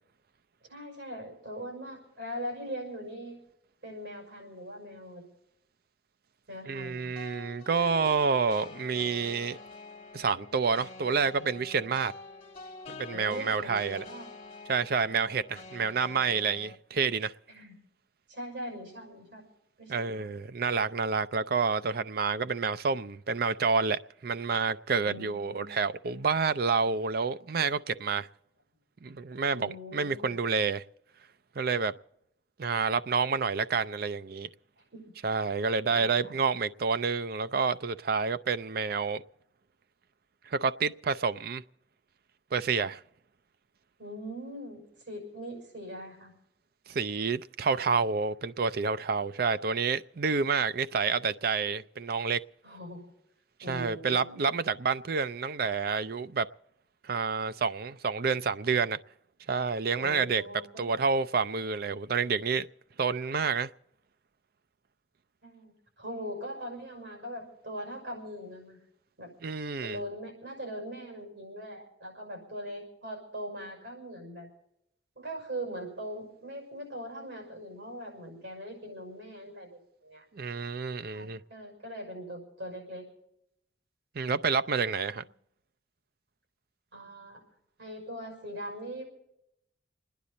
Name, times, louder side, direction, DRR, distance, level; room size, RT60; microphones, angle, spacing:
voice 1, 0.7-3.4 3.8-5.2 6.5-7.1 13.1-14.3 17.5-17.8 18.3-19.4 19.8-20.3 25.0-25.8 29.5-30.4 34.9-35.1 35.8-36.4 44.0-46.3 52.6-53.1 53.6-54.5 60.0-60.8 65.4-68.8 69.2-69.3 69.8-74.5 75.2-80.2 81.1-83.1 86.9-87.4 87.8-89.0, equal, 80° right, 6.0 m, -41 dB
voice 2, 6.7-9.6 10.1-12.1 12.9-14.0 14.7-17.3 19.9-28.3 29.0-30.8 31.6-31.9 32.6-34.5 35.2-39.2 40.5-41.6 42.5-43.0 46.9-52.4 53.7-56.5 57.0-59.0 59.5-60.4 60.8-62.7 63.0-63.7 69.4-70.0 80.3-81.4 84.1-85.2, right 5 dB, 55° right, 0.5 m, -29 dB
sound 1, 7.2-16.8, left 3 dB, 35° left, 1.7 m, -46 dB
29.5 x 10.0 x 4.1 m
head